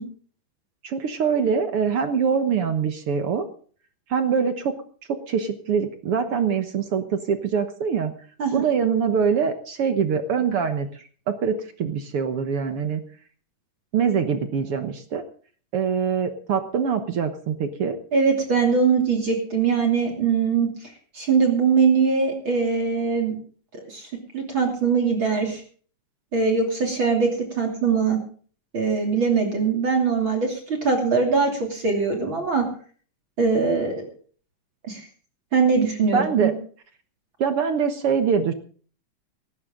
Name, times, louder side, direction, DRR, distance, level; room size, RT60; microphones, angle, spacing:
voice 1, 0.8-3.5 4.1-4.8 5.1-8.1 8.5-10.9 11.3-13.0 13.9-15.2 15.7-18.0 36.1-36.5 37.4-38.5, right 6 dB, 55° right, 8 dB, 1.8 m, -24 dB
voice 2, 18.1-20.7 21.1-23.4 23.9-24.1 24.3-25.6 26.3-28.2 28.7-32.7 33.4-34.1 34.8-35.1 35.5-36.5, right 5 dB, 40° right, 2 dB, 3.5 m, -22 dB
18.5 x 14.5 x 3.8 m, 0.43 s
omnidirectional pair, 3.6 m